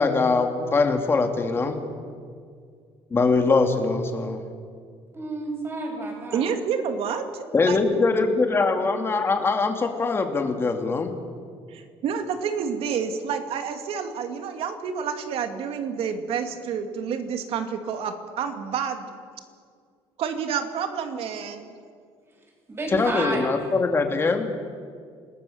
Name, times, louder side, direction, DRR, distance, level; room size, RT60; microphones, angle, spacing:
voice 1, 0.0-1.8 3.1-4.4 7.5-11.1 22.9-24.5, left 3 dB, 20° left, 4 dB, 2.3 m, -22 dB
voice 2, 5.1-6.5 22.7-23.5, right 2 dB, 20° right, 0 dB, 7.3 m, -31 dB
voice 3, 6.3-7.8 11.7-19.2 20.2-21.8, right 7 dB, 60° right, 6 dB, 2.5 m, -29 dB
28.5 x 20.0 x 7.2 m, 2.1 s
cardioid pair, 165°, 11 cm